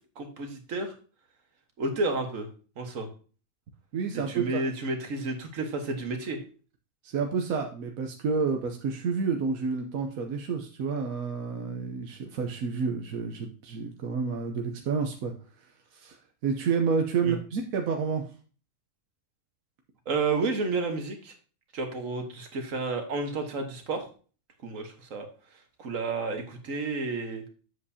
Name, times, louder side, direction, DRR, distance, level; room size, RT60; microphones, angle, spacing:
voice 1, 0.2-0.9 1.8-2.5 2.8-3.1 4.1-6.4 17.2-17.4 20.1-21.3 21.7-24.1 24.6-25.3 25.8-27.5, right 3 dB, 70° right, 4 dB, 1.7 m, -31 dB
voice 2, 3.9-4.6 7.0-15.3 15.9-16.2 16.4-18.3, right 5 dB, 90° right, 4 dB, 1.3 m, -29 dB
7.9 x 7.6 x 2.7 m, 0.38 s
omnidirectional pair, 1.4 m